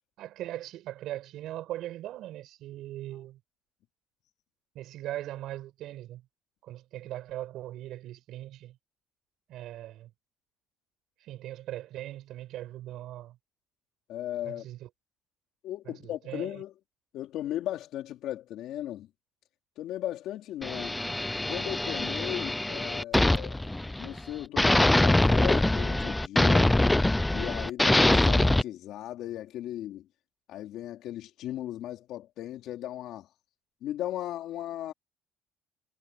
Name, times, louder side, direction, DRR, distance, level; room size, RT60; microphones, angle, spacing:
voice 1, 0.2-3.4 4.7-6.3 6.6-8.8 9.5-10.1 11.2-13.4 14.4-14.9 15.9-16.6, right 14 dB, 70° right, 5.8 m, -40 dB
voice 2, 14.1-14.7 15.6-16.7 17.1-19.1 19.8-20.9 21.5-23.6 24.0-26.7 27.3-30.1 30.5-33.3 33.8-34.9, left 13 dB, 70° left, 3.5 m, -37 dB
sound 1, 20.6-24.2 24.6-28.6, left 1 dB, 10° left, 0.7 m, -24 dB
cardioid pair, 125°, 0 cm